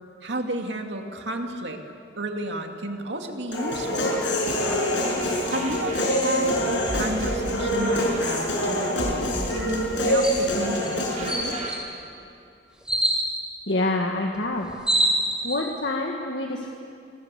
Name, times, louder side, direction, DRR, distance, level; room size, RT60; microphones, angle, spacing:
voice 1, 0.2-1.8 2.2-4.2 5.5-11.6, right 1 dB, 70° right, 3 dB, 2.4 m, -31 dB
Human voice, 3.5-11.5, equal, 85° left, 6.8 m, -25 dB
sound 1, 4.8-11.7, right 1 dB, 40° right, 4.3 m, -37 dB
sound 2, 10.2-10.4 10.9-11.0 11.3-11.8 12.9-13.2 14.3-14.4 14.6-15.6, right 1 dB, 5° right, 6.5 m, -24 dB
voice 2, 13.7-14.7 15.4-16.7, left 2 dB, 65° left, 1 dB, 1.8 m, -26 dB
28.0 x 20.0 x 8.4 m, 2.5 s
head